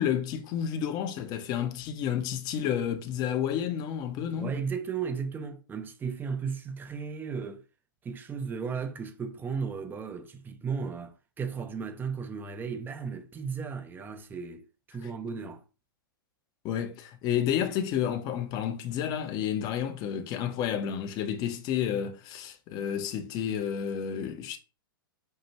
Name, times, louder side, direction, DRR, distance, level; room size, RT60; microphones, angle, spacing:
voice 1, 0.0-4.5 15.0-15.1 16.6-24.6, left 9 dB, 35° left, 0.7 m, -30 dB
voice 2, 4.3-7.6 8.0-15.6, right 6 dB, 15° right, 0.6 m, -35 dB
5.5 x 2.5 x 3.0 m
hypercardioid pair, 110°, 12 cm